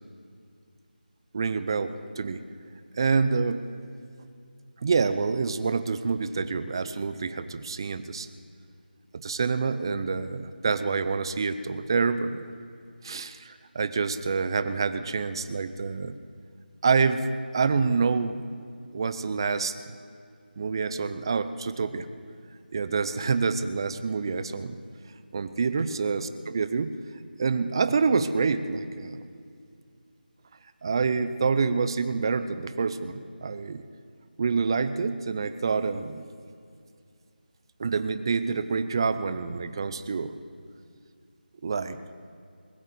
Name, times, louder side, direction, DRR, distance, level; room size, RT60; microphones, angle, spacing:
voice 1, 1.3-2.4 3.0-3.7 4.8-8.3 9.1-12.4 13.0-16.2 16.8-17.3 17.5-18.4 18.9-20.0 20.6-22.1 22.7-24.8 25.3-27.0 27.4-29.2 30.8-33.8 34.4-36.2 37.8-40.4 41.6-42.0, right 5 dB, 25° right, 12 dB, 0.6 m, -27 dB
20.5 x 7.3 x 9.6 m, 2.3 s
figure-of-eight pair, 170°, 6 cm